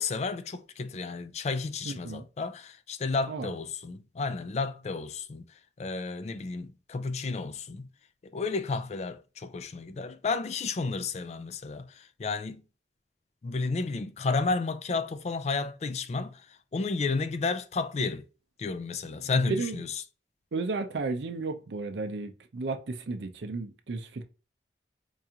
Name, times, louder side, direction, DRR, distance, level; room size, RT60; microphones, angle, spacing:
voice 1, 0.0-5.4 5.8-7.9 8.2-12.6 13.4-18.2 18.6-20.0, left 4 dB, 40° left, 0.3 m, -32 dB
voice 2, 1.8-2.2 3.3-3.5 19.2-19.8 20.5-24.3, right 3 dB, 80° right, 0.5 m, -34 dB
4.6 x 2.4 x 2.8 m
head